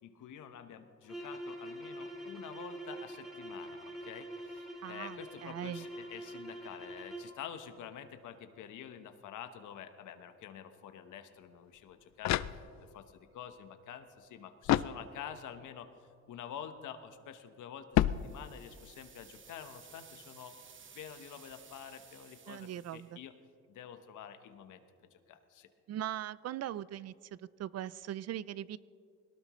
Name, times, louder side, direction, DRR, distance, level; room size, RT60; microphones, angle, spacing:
voice 1, 0.0-12.6 12.9-20.5 20.9-23.3 23.7-25.7, left 9 dB, 80° left, 8 dB, 1.2 m, -48 dB
sound 1, 1.0-7.4, right 1 dB, ahead, 3.2 m, -45 dB
voice 2, 4.8-5.8 22.5-23.1 25.9-28.8, right 11 dB, 55° right, 19 dB, 0.5 m, -40 dB
sound 2, 11.8-13.1 14.6-15.5 17.9-18.9, left 13 dB, 65° left, 0.5 m, -32 dB
sound 3, 18.1-23.1, right 6 dB, 40° right, 1.1 m, -57 dB
21.5 x 18.5 x 3.1 m, 2.4 s
cardioid pair, 90°, 30 cm